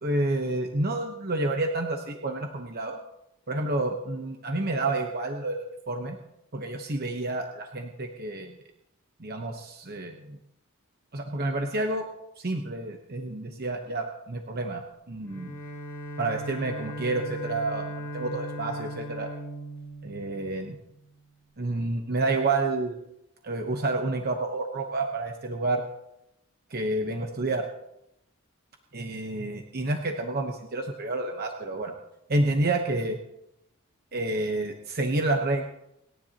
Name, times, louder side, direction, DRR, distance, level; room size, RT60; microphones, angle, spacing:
voice 1, 0.0-3.0 3.5-6.2 6.5-8.6 9.2-10.4 11.1-12.0 12.4-14.8 15.1-15.5 16.2-19.3 20.0-20.8 21.6-22.9 23.4-25.8 26.7-27.7 28.9-31.9 32.3-33.2 34.1-35.6, right 2 dB, 45° right, 4 dB, 1.0 m, -29 dB
Bowed string instrument, 15.2-20.9, equal, 10° left, 6.2 m, -38 dB
29.5 x 10.5 x 2.9 m, 0.82 s
head